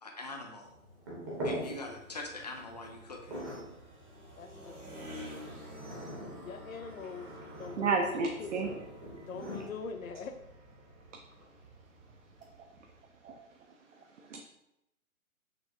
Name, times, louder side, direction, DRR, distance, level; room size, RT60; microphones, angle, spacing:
voice 1, 0.0-0.7 1.4-3.4, left 2 dB, 30° left, 2 dB, 0.4 m, -43 dB
sound 1, 0.6-9.7, equal, 15° right, 0.6 m, -43 dB
sound 2, 1.9-13.4, equal, 85° right, 1.1 m, -50 dB
voice 2, 4.4-5.6 6.4-8.8 9.2-10.4, left 5 dB, 70° left, 7 dB, 0.7 m, -43 dB
voice 3, 7.8-8.7 13.2-13.4 14.3-14.4, right 4 dB, 60° right, 3 dB, 0.5 m, -30 dB
6.1 x 2.5 x 2.5 m, 0.85 s
figure-of-eight pair, 135°, 43 cm